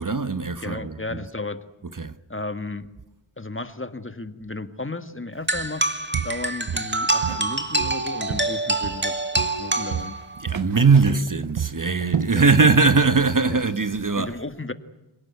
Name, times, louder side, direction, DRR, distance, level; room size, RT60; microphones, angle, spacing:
voice 1, 0.0-1.2 1.8-2.2 10.4-14.4, right 4 dB, 40° right, 1.1 m, -20 dB
voice 2, 0.6-1.6 2.3-2.9 3.4-5.9 6.2-10.2 10.8-11.3 12.3-12.4 13.5-13.6 14.1-14.7, left 2 dB, 25° left, 1.8 m, -34 dB
sound 1, 5.5-10.5, right 2 dB, 20° right, 2.3 m, -26 dB
Walk footsteps, 5.5-5.8 6.1-7.5 7.8-9.1 9.4-12.9 13.2-13.5 13.9-14.0, right 8 dB, 65° right, 0.9 m, -31 dB
26.5 x 18.0 x 9.6 m
wide cardioid pair, 55°, 50 cm